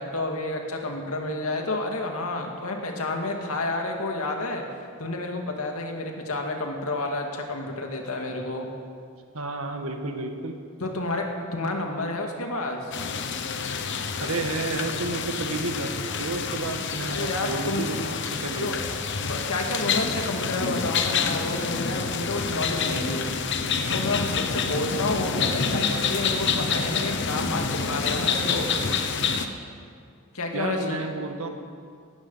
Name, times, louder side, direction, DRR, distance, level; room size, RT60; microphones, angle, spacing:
voice 1, 0.0-4.6 5.0-8.7 10.8-11.2 11.5-13.0 17.1-18.3 18.6-19.0 19.2-23.3 23.9-28.7 30.3-31.1, left 2 dB, 85° left, 2 dB, 2.3 m, -30 dB
voice 2, 9.3-10.5 14.2-18.7 30.5-31.5, right 2 dB, 80° right, 5 dB, 1.7 m, -31 dB
Light rain in the garden, 12.9-29.5, left 5 dB, 55° left, 1.0 m, -28 dB
17.5 x 14.0 x 5.7 m, 2.3 s
head